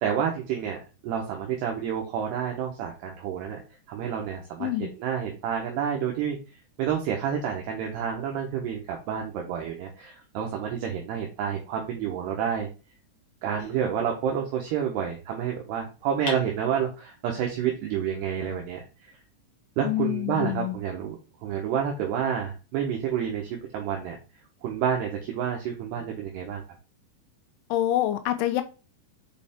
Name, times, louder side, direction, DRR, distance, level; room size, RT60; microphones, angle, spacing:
voice 1, 0.0-3.6 3.9-6.4 6.8-12.7 13.4-19.1 19.8-21.2 21.4-24.2 24.6-26.6, right 8 dB, 70° right, 2.8 m, -29 dB
voice 2, 4.6-4.9 19.8-20.8 27.7-28.6, left 13 dB, 85° left, 3.1 m, -26 dB
sound 1, 13.6-14.7 16.3-17.3, left 4 dB, 65° left, 1.6 m, -41 dB
7.5 x 4.9 x 3.6 m
omnidirectional pair, 5.5 m